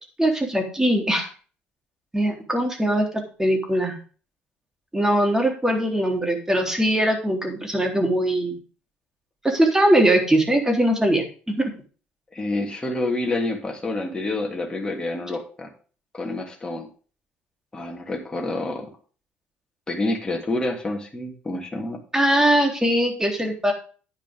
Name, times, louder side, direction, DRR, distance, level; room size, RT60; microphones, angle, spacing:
voice 1, 0.2-1.3 2.1-4.0 4.9-8.6 9.4-11.7 22.1-23.7, right 1 dB, 10° right, 2 dB, 3.6 m, -21 dB
voice 2, 12.3-15.7 16.1-16.9 17.7-18.9 19.9-22.0, left 2 dB, 15° left, 0 dB, 3.0 m, -28 dB
9.9 x 9.4 x 3.7 m, 0.38 s
figure-of-eight pair, 55°, 5 cm